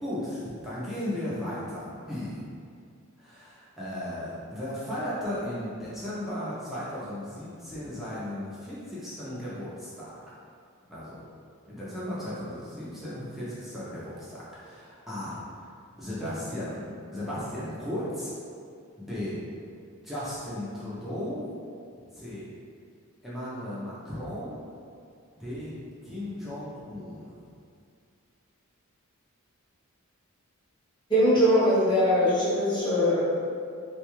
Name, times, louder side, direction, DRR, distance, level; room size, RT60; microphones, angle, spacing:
voice 1, 0.0-2.4 3.2-10.1 10.9-11.3 11.7-15.7 16.0-18.3 19.0-19.4 20.0-21.4 22.1-22.5 23.2-24.6 25.3-25.8 26.0-27.4, left 1 dB, ahead, -10 dB, 0.5 m, -36 dB
voice 2, 31.1-33.2, equal, 20° left, -9 dB, 0.8 m, -21 dB
3.7 x 2.3 x 3.0 m, 2.3 s
head